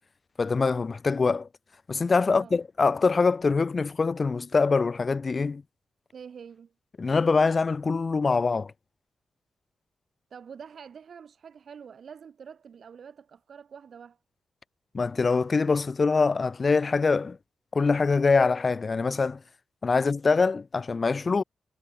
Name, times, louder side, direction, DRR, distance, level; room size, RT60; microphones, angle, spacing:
voice 1, 0.4-1.5 1.9-5.6 7.0-8.7 14.9-17.4 17.7-19.4 19.8-21.4, left 4 dB, 40° left, 0.5 m, -24 dB
voice 2, 2.3-2.6 6.1-6.7 10.3-14.2, right 7 dB, 65° right, 5.4 m, -46 dB
cardioid pair, 100°, 0 cm